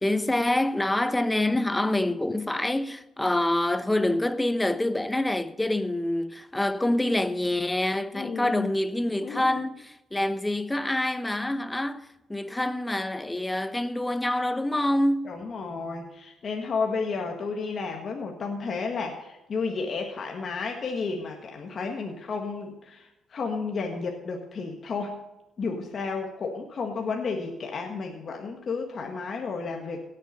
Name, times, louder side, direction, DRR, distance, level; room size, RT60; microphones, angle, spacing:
voice 1, 0.0-15.4, left 1 dB, 10° left, 0.8 m, -26 dB
voice 2, 8.1-8.7 9.2-9.6 15.2-25.2 25.6-30.0, left 4 dB, 50° left, 1.7 m, -32 dB
17.0 x 7.5 x 5.3 m
cardioid pair, 90°, 0 cm